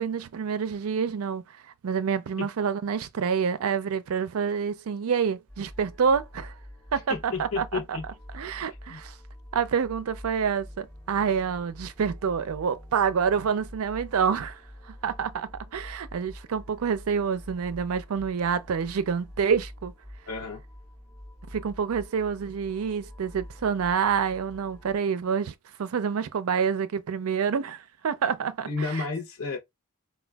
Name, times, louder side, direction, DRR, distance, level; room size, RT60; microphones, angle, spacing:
voice 1, 0.0-1.4 1.8-6.5 6.9-8.0 8.3-9.1 9.5-14.6 14.9-19.9 21.5-25.5 25.8-29.1, right 6 dB, 70° right, 0.4 m, -27 dB
sound 1, 5.5-25.0, left 1 dB, 15° left, 0.5 m, -46 dB
voice 2, 7.1-8.0 8.9-9.0 20.3-20.6 28.6-29.6, left 4 dB, 75° left, 0.7 m, -31 dB
4.1 x 2.2 x 2.2 m
head